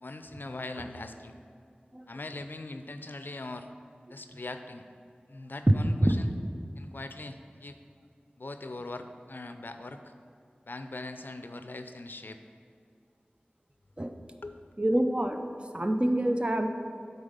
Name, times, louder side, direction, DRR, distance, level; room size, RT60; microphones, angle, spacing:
voice 1, 0.0-1.4 2.1-3.7 4.1-4.9 5.3-6.3 6.8-7.8 8.4-10.1 10.6-12.4 14.4-14.6, left 2 dB, 70° left, 8 dB, 0.4 m, -41 dB
voice 2, 14.8-15.4 15.7-16.7, right 1 dB, 30° right, 5 dB, 0.5 m, -26 dB
8.7 x 4.0 x 5.2 m, 2.4 s
wide cardioid pair, 40°, 4 cm